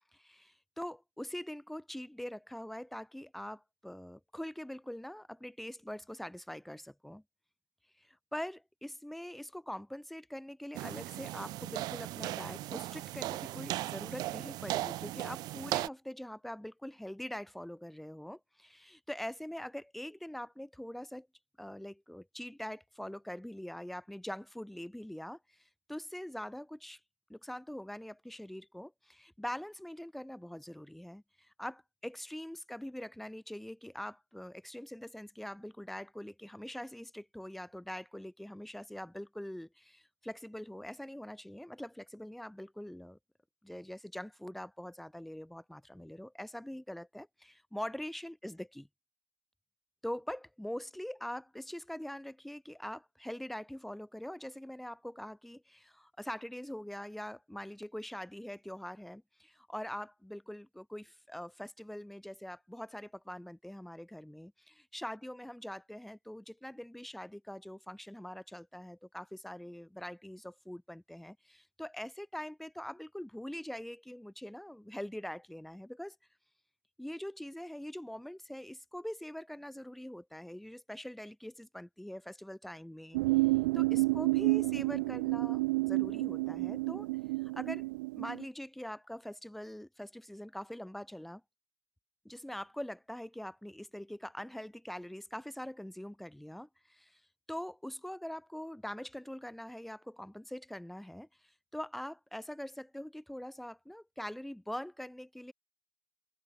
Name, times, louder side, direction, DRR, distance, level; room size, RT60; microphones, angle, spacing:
voice 1, 0.2-7.2 8.0-21.3 21.6-27.0 27.3-43.2 43.6-48.9 50.0-76.2 77.0-83.2 83.7-87.1 87.4-87.9 88.2-91.4 92.3-97.2 97.5-101.3 101.7-105.5, left 1 dB, ahead, 1.8 m, -43 dB
sound 1, 10.7-15.9, right 17 dB, 25° right, 2.9 m, -37 dB
sound 2, 83.1-88.4, right 22 dB, 45° right, 0.9 m, -30 dB
supercardioid pair, 170°, 15 cm